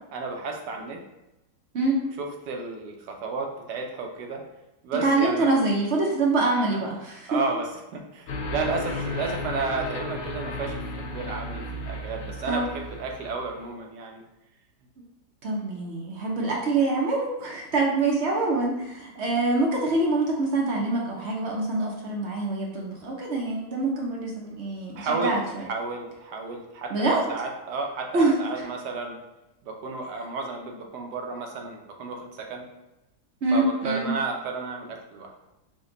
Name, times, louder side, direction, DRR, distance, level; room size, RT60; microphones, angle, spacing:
voice 1, 0.1-1.0 2.2-4.4 4.8-5.5 6.7-6.9 7.3-14.2 25.0-29.2 29.6-32.7 33.5-35.3, right 4 dB, 75° right, 2 dB, 1.3 m, -32 dB
voice 2, 1.7-2.1 5.0-7.4 12.5-12.6 15.4-25.4 26.9-27.3 28.1-28.3 33.4-34.1, right 2 dB, 55° right, -2 dB, 0.8 m, -25 dB
sound 1, 8.3-13.6, left 1 dB, 65° left, 0.9 m, -34 dB
5.1 x 2.2 x 3.8 m, 0.95 s
omnidirectional pair, 1.9 m